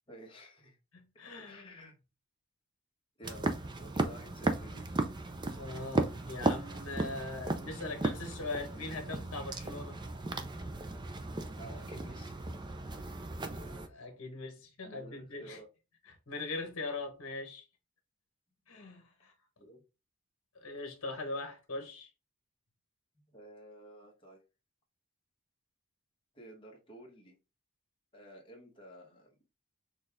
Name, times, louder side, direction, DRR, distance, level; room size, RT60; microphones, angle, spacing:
voice 1, 0.1-0.8 1.4-2.0 3.2-4.9 11.6-12.4 12.8-13.3 14.8-15.7 19.6-19.8 23.3-24.4 26.3-27.3 28.1-29.3, right 1 dB, 25° left, 1.2 m, -52 dB
voice 2, 0.9-1.7 5.5-10.0 13.5-15.6 16.0-17.7 18.7-19.3 20.5-22.1, left 3 dB, 65° left, 1.3 m, -41 dB
sound 1, 3.2-13.9, right 2 dB, 20° right, 0.4 m, -36 dB
6.3 x 2.4 x 3.4 m
head